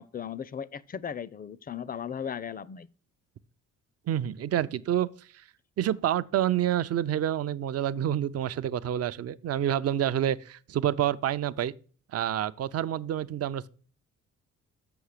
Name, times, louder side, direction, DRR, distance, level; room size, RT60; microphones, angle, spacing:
voice 1, 0.0-2.9, left 8 dB, 30° left, 0.5 m, -37 dB
voice 2, 4.1-5.1 5.8-11.7 12.1-13.7, right 11 dB, 55° right, 0.5 m, -28 dB
7.1 x 5.6 x 6.5 m
cardioid pair, 90°, 30 cm